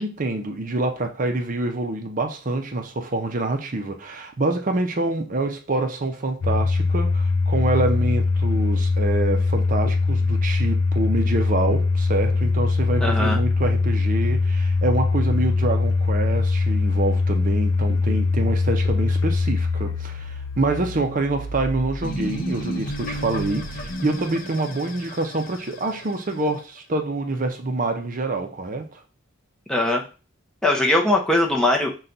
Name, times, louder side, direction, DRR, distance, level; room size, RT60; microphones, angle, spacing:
voice 1, 0.0-29.0, right 2 dB, 40° right, 0.5 m, -26 dB
Domestic sounds home sounds, 6.4-23.3, left 3 dB, 85° left, 0.5 m, -22 dB
voice 2, 13.0-13.4 29.7-30.0 30.6-31.9, left 1 dB, 5° left, 0.6 m, -20 dB
sound 1, 22.0-26.4, right 1 dB, 45° left, 0.7 m, -32 dB
5.6 x 2.3 x 3.8 m
head